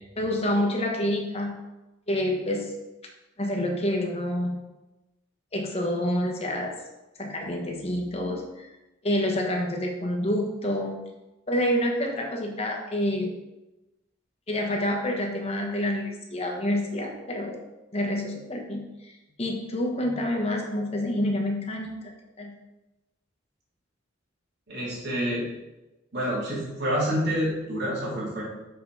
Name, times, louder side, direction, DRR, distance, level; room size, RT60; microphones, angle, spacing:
voice 1, 0.0-1.5 2.1-2.7 3.4-4.6 5.5-6.7 7.2-8.7 9.0-11.0 11.5-13.3 14.5-17.6 17.9-19.1 19.4-22.1 22.4-22.5, left 1 dB, 30° left, 1 dB, 1.1 m, -28 dB
voice 2, 24.7-25.4 26.1-28.4, equal, 55° right, -7 dB, 2.6 m, -28 dB
6.7 x 5.5 x 4.7 m, 1.0 s
head